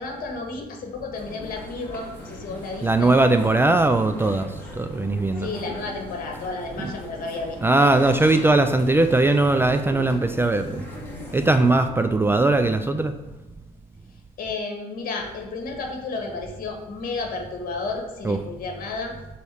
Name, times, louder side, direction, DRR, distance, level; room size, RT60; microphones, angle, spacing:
voice 1, 0.0-3.2 5.3-7.6 14.4-19.1, left 3 dB, 60° left, 2 dB, 1.7 m, -32 dB
sound 1, 1.1-11.9, left 1 dB, 10° left, 2.1 m, -40 dB
voice 2, 2.8-5.5 6.8-6.9 7.6-10.8 11.3-13.1 18.2-18.4, right 2 dB, 15° right, 8 dB, 0.3 m, -20 dB
6.8 x 4.2 x 4.8 m, 1.1 s
cardioid pair, 110°, 17 cm